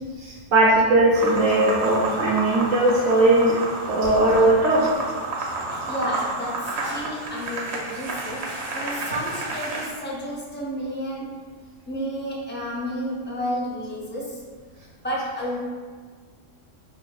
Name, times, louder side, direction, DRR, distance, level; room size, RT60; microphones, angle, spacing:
voice 1, 0.2-3.5 3.9-4.9, right 2 dB, 80° right, -5 dB, 1.1 m, -19 dB
sound 1, 1.2-9.9, right 2 dB, 60° right, 0.8 m, -30 dB
voice 2, 5.8-11.4 11.9-14.4 15.0-15.6, equal, 15° left, -5 dB, 0.5 m, -31 dB
5.8 x 2.5 x 2.4 m, 1.6 s
omnidirectional pair, 1.3 m